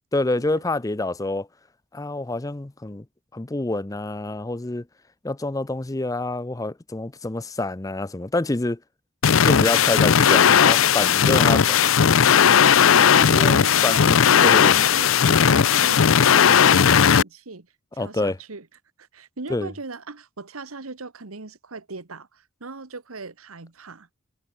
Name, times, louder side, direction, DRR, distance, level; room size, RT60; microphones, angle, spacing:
voice 1, 0.1-1.5 1.9-3.0 3.3-4.9 5.2-8.8 9.4-11.8 13.3-14.2 14.4-14.8 18.0-18.4 19.5-19.7, left 2 dB, 15° left, 0.5 m, -27 dB
sound 1, 9.2-17.2, left 7 dB, 70° left, 0.6 m, -16 dB
voice 2, 12.6-17.7 17.9-18.7 19.0-24.1, right 3 dB, 90° right, 1.5 m, -38 dB
head